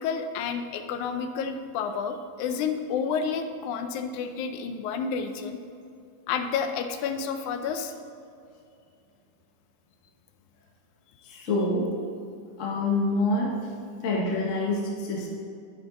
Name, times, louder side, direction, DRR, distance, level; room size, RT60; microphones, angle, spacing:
voice 1, 0.0-5.6 6.3-7.9, left 6 dB, 80° left, 7 dB, 1.9 m, -30 dB
voice 2, 11.2-11.9 12.6-13.5 14.0-15.3, left 2 dB, 55° left, -3 dB, 0.8 m, -26 dB
9.8 x 8.6 x 3.8 m, 2.5 s
omnidirectional pair, 3.7 m